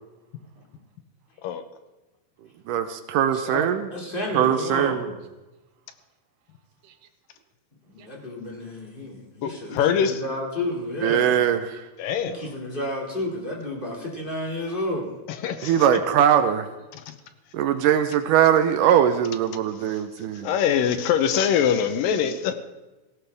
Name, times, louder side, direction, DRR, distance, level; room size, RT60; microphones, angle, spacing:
voice 1, 2.7-3.8 4.3-5.1 11.0-11.8 15.6-16.7 17.5-20.5, right 9 dB, 75° right, 9 dB, 2.2 m, -21 dB
voice 2, 3.3-5.2 7.8-11.5 12.2-15.2, left 1 dB, 15° left, -2 dB, 2.3 m, -31 dB
voice 3, 9.4-10.2 12.0-12.5 15.3-16.0 16.9-17.2 19.8-22.5, left 8 dB, 80° left, 10 dB, 2.5 m, -24 dB
17.5 x 16.5 x 3.5 m, 1.1 s
omnidirectional pair, 4.0 m